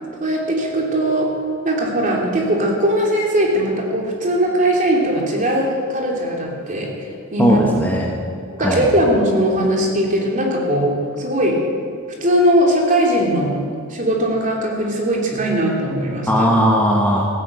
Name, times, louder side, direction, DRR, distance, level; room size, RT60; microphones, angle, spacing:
voice 1, 0.2-1.3 1.6-6.9 7.3-7.6 7.9-8.0 8.6-11.6 12.2-13.6 13.9-16.5, right 1 dB, 40° right, -1 dB, 3.0 m, -19 dB
voice 2, 7.4-8.1 8.6-8.9 16.3-17.3, equal, 10° left, -1 dB, 1.5 m, -17 dB
15.0 x 11.0 x 8.2 m, 2.3 s
head